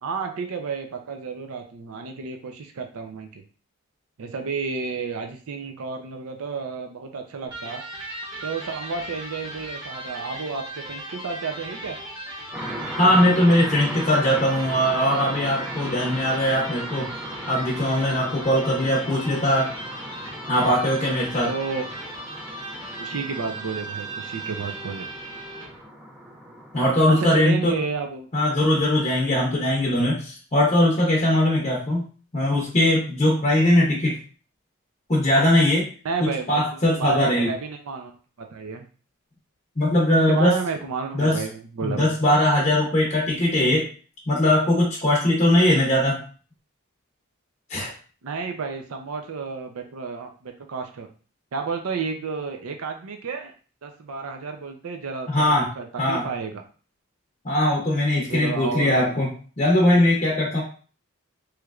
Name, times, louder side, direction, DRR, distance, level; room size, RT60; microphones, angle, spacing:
voice 1, 0.0-3.4 4.2-7.8 8.4-12.0 21.4-21.8 23.0-25.1 27.2-28.3 29.5-29.7 36.0-38.8 40.3-42.1 48.2-51.1 51.5-53.5 53.8-56.6 58.3-59.2, right 5 dB, 85° right, 5 dB, 0.5 m, -31 dB
Electric guitar, 7.5-25.8, right 1 dB, 20° right, 0.8 m, -37 dB
sound 1, 12.5-27.2, equal, 5° right, 0.4 m, -38 dB
voice 2, 12.9-17.1 17.5-19.7 20.5-21.5 26.7-27.7 28.3-32.1 32.3-34.2 35.1-35.9 36.2-37.5 39.8-40.6 41.1-41.4 41.8-43.9 44.3-46.2 47.7-47.9 55.3-55.7 56.0-56.2 57.4-59.3 59.6-60.6, left 1 dB, 30° left, -4 dB, 0.7 m, -20 dB
3.2 x 3.0 x 2.4 m, 0.39 s
head